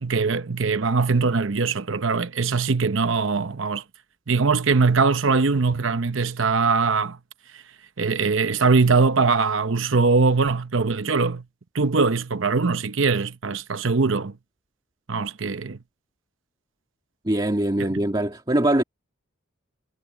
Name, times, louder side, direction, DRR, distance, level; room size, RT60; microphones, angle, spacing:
voice 1, 0.0-3.8 4.3-7.2 7.5-7.6 8.0-11.4 11.7-14.3 15.1-15.8 17.8-18.0, right 4 dB, 70° right, 0.8 m, -21 dB
voice 2, 17.2-18.8, right 1 dB, 20° right, 2.0 m, -22 dB
head